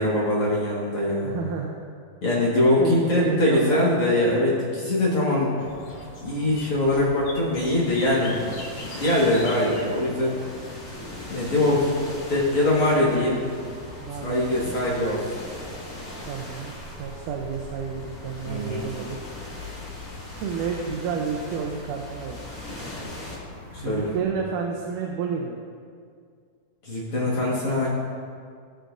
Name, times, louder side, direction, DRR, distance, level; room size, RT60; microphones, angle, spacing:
voice 1, 0.0-1.3 2.2-5.5 6.2-10.3 11.3-12.0 12.3-13.5 14.2-15.2 18.5-18.8 23.7-24.1 26.8-27.9, left 1 dB, 50° left, -7 dB, 2.1 m, -23 dB
voice 2, 1.2-1.7 2.8-3.9 14.0-14.7 16.3-16.7 17.0-19.2 20.3-22.4 23.8-25.6, right 6 dB, 75° right, 0 dB, 2.1 m, -30 dB
sound 1, 5.6-24.2, left 2 dB, 70° left, 3.1 m, -42 dB
sound 2, 7.6-23.4, left 1 dB, 25° left, 2.1 m, -41 dB
17.5 x 6.6 x 2.6 m, 2.2 s
omnidirectional pair, 3.9 m